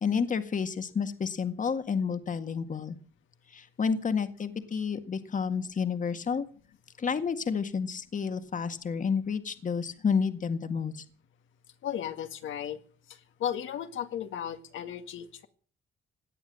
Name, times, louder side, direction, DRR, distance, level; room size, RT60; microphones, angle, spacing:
voice 1, 0.0-3.0 3.5-6.5 7.0-11.0, left 6 dB, 40° left, 9 dB, 1.9 m, -30 dB
voice 2, 11.8-12.8 13.4-15.5, left 9 dB, 75° left, 8 dB, 2.0 m, -35 dB
18.0 x 10.5 x 7.7 m, 0.43 s
cardioid pair, 90°, 20 cm